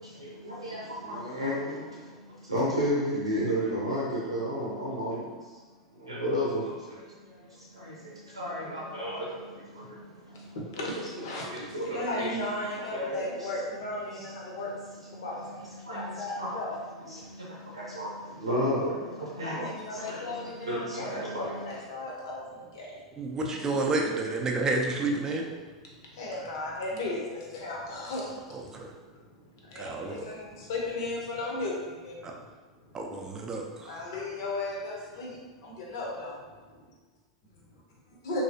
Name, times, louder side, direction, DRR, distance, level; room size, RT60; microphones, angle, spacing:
voice 1, 0.0-5.6 5.9-10.9 11.2-12.3 12.8-13.5 14.1-14.4 15.1-15.4 15.8-16.6 17.1-21.8, equal, 80° right, -6 dB, 0.6 m, -33 dB
voice 2, 10.5-14.7 15.1-16.9 19.4-21.2 21.5-23.4 25.6-33.0 33.5-36.6 38.2-38.4, left 2 dB, 55° left, -2 dB, 0.8 m, -36 dB
voice 3, 23.2-25.5 28.5-28.9 29.8-30.3 32.2-32.3 32.9-33.9, right 2 dB, 20° right, 1 dB, 0.5 m, -30 dB
3.1 x 2.7 x 2.7 m, 1.3 s
figure-of-eight pair, 90°, 3 cm